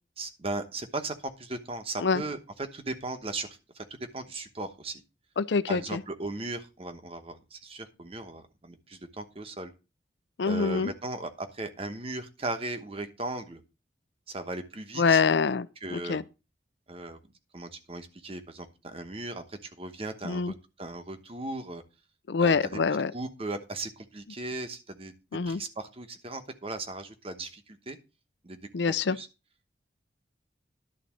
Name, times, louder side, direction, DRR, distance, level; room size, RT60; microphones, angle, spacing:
voice 1, 0.2-3.8 4.1-5.0 5.7-9.7 10.4-13.6 14.3-15.2 15.8-16.2 16.9-17.2 17.5-21.8 22.4-22.8 23.1-25.1 25.4-28.0 28.4-29.3, right 2 dB, 30° right, 1.1 m, -37 dB
voice 2, 5.4-6.0 10.4-10.9 15.0-15.7 15.9-16.2 20.2-20.5 22.3-23.1 25.3-25.6 28.7-29.2, left 5 dB, 70° left, 0.5 m, -25 dB
11.0 x 4.0 x 7.4 m
head